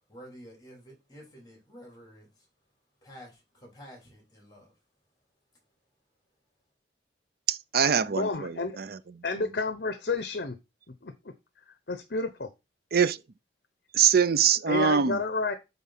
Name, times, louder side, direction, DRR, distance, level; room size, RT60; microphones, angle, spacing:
voice 1, 0.1-2.5 3.0-4.7, equal, 20° left, 3.6 m, -50 dB
voice 2, 7.5-8.5 8.8-8.9 12.9-13.2 13.9-15.2, right 7 dB, 55° right, 0.5 m, -23 dB
voice 3, 8.2-8.8 9.2-10.6 11.0-11.1 11.9-12.5 14.7-15.5, left 3 dB, 60° left, 0.9 m, -30 dB
8.3 x 3.8 x 5.9 m
head